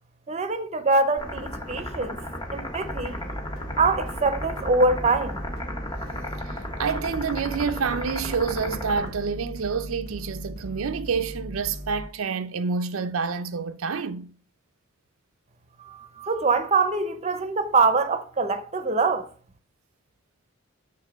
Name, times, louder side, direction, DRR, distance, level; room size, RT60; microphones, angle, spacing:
voice 1, 0.3-2.2 2.5-3.2 3.8-5.4 15.9-19.3, right 3 dB, 35° right, 0.7 m, -24 dB
sound 1, 1.2-9.1, left 1 dB, 20° left, 1.5 m, -34 dB
sound 2, 2.8-12.1, equal, 80° left, 2.0 m, -38 dB
voice 2, 6.4-14.3, right 5 dB, 90° right, 0.5 m, -28 dB
6.6 x 3.6 x 6.1 m
head